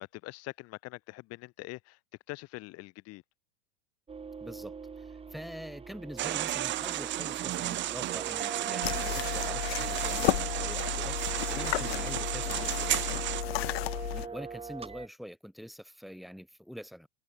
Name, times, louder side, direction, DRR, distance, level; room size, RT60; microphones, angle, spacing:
voice 1, 0.1-2.0 2.3-3.2 14.1-14.3, left 21 dB, 50° left, 6.4 m, -44 dB
sound 1, 4.1-15.1, right 5 dB, 20° right, 4.7 m, -42 dB
voice 2, 4.4-13.2 14.1-17.1, equal, ahead, 5.8 m, -45 dB
sound 2, 6.2-13.4, right 14 dB, 35° right, 1.0 m, -33 dB
sound 3, 8.8-14.3, left 19 dB, 70° left, 0.8 m, -33 dB
hypercardioid pair, 100°, 31 cm